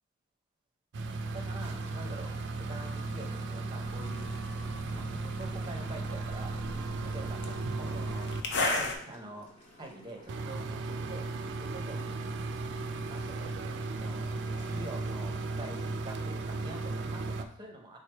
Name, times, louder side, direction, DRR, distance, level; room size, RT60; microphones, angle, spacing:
sound 1, 0.9-8.4 10.3-17.4, right 3 dB, 55° right, 0.4 m, -36 dB
sound 2, 1.3-16.5, equal, 30° left, 1.2 m, -55 dB
voice 1, 1.3-2.3 2.7-4.3 4.9-6.6 7.1-9.5 9.8-11.3 11.6-12.3 12.8-13.5 13.9-14.3 14.7-18.0, right 2 dB, 20° right, 2 dB, 0.7 m, -46 dB
sound 3, 3.8-8.9, left 2 dB, 55° left, 0.6 m, -37 dB
3.6 x 3.2 x 4.4 m, 0.63 s
head